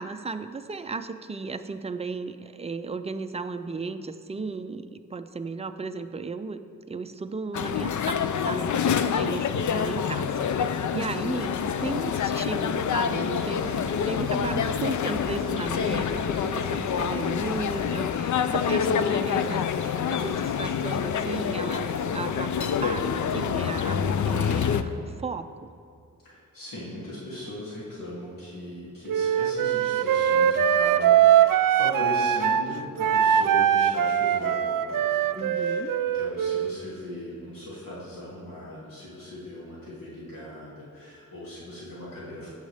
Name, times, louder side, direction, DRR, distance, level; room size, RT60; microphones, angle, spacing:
voice 1, 0.0-6.6 6.9-25.7 35.3-35.9, right 4 dB, 20° right, 9 dB, 0.4 m, -35 dB
sound 1, 7.5-24.8, left 7 dB, 65° left, 0.5 m, -27 dB
voice 2, 9.2-9.6 15.8-16.6 18.8-19.5 26.2-42.5, left 1 dB, 85° left, -9 dB, 2.8 m, -39 dB
sound 2, 13.3-18.6, right 1 dB, 30° left, 2.1 m, -44 dB
Wind instrument woodwind instrument, 29.1-32.7 33.0-36.7, right 9 dB, 80° right, 0.5 m, -22 dB
16.5 x 7.2 x 3.4 m, 2.5 s
wide cardioid pair, 135°, 33 cm